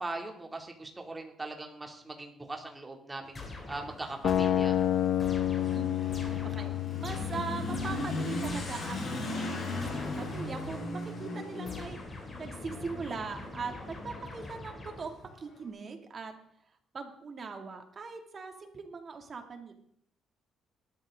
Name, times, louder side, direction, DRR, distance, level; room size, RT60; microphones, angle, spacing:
voice 1, 0.0-3.4 3.7-4.8, right 2 dB, 20° right, 3 dB, 2.8 m, -40 dB
Motorcycle / Accelerating revving vroom, 3.2-15.6, left 2 dB, 40° left, 7.6 m, -39 dB
sound 1, 3.3-9.0 9.8-11.1 11.7-15.3, left 2 dB, 25° left, 3.5 m, -45 dB
sound 2, 4.2-10.3, left 11 dB, 70° left, 0.7 m, -31 dB
voice 2, 5.7-6.7 7.0-12.0 12.4-16.3 16.9-19.7, right 5 dB, 40° right, 5 dB, 2.5 m, -41 dB
19.5 x 13.0 x 3.8 m, 0.67 s
cardioid pair, 110°, 0 cm